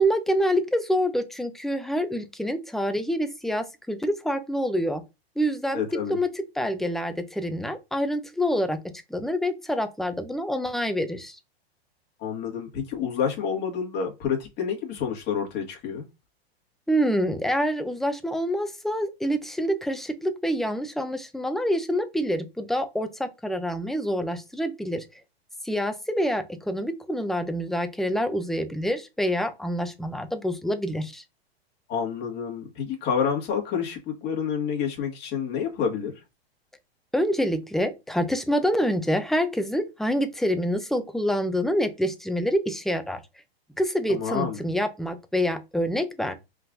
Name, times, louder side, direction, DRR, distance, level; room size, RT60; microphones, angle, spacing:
voice 1, 0.0-5.0 5.4-5.8 6.1-8.8 9.1-11.4 16.9-25.0 25.6-31.2 37.1-43.2 43.8-46.3, equal, ahead, 0.5 m, -26 dB
voice 2, 5.7-6.2 12.2-16.1 31.9-36.1 44.1-44.7, left 7 dB, 35° left, 2.0 m, -28 dB
5.3 x 3.8 x 2.6 m
hypercardioid pair, 125°, 31 cm